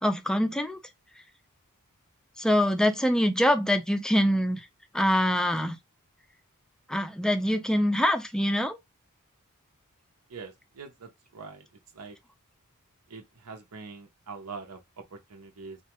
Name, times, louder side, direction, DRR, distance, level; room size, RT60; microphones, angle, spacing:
voice 1, 0.0-0.8 2.4-4.7 4.9-5.8 6.9-8.8, equal, 5° left, 0.3 m, -24 dB
voice 2, 10.3-11.7 11.9-12.2 13.1-15.8, right 4 dB, 85° right, 0.7 m, -44 dB
2.7 x 2.3 x 3.0 m
head